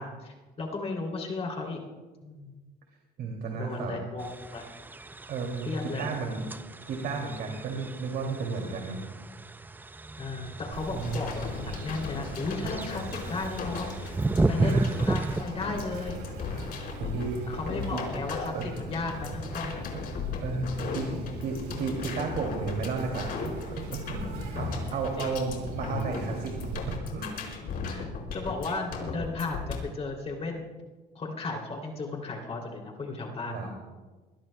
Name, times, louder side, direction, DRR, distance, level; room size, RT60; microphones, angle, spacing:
voice 1, 0.0-1.8 2.2-2.5 3.5-4.7 5.6-6.1 10.2-14.2 14.5-16.2 17.5-19.9 25.2-25.4 27.8-30.7 31.1-33.7, left 3 dB, 35° left, 0 dB, 2.9 m, -35 dB
voice 2, 3.2-4.0 5.3-5.7 6.0-6.5 6.9-9.0 10.9-11.2 14.6-14.9 15.2-15.3 17.0-17.4 17.7-18.1 18.5-18.8 19.6-19.7 20.4-23.5 23.9-26.7 27.1-27.3 33.5-33.7, right 4 dB, 70° right, 1 dB, 2.6 m, -33 dB
sound 1, 4.2-15.4, right 3 dB, 10° right, 0.5 m, -33 dB
Insect, 10.7-27.0, right 3 dB, 85° right, 4.1 m, -42 dB
sound 2, 11.0-29.8, left 4 dB, 60° left, 4.6 m, -37 dB
23.5 x 19.5 x 2.2 m, 1.3 s
cardioid pair, 110°, 17 cm